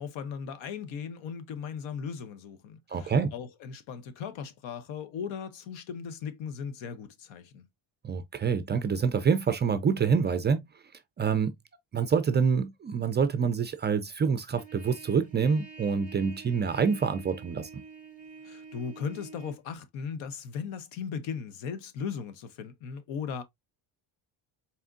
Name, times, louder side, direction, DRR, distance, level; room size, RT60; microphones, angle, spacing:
voice 1, 0.0-7.7 18.4-23.4, left 6 dB, 85° left, 0.9 m, -37 dB
voice 2, 2.9-3.3 8.0-10.6 11.2-11.5 11.9-17.7, right 6 dB, 25° right, 0.3 m, -26 dB
Trumpet, 14.5-19.6, right 5 dB, 15° left, 1.4 m, -48 dB
4.3 x 3.5 x 2.4 m
cardioid pair, 120°, 46 cm